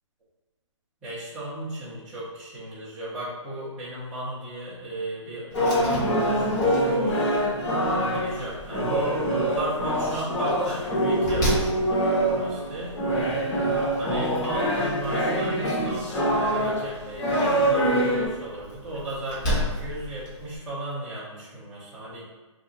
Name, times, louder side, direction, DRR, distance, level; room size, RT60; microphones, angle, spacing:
voice 1, 1.0-7.2 8.0-13.0 13.5-22.2, right 1 dB, 5° right, -13 dB, 0.4 m, -36 dB
sound 1, 5.5-18.3, equal, 65° left, 1.3 m, -24 dB
Slam, 5.5-20.6, equal, 30° left, 1.1 m, -36 dB
2.8 x 2.5 x 3.8 m, 1.2 s
hypercardioid pair, 170°, 17 cm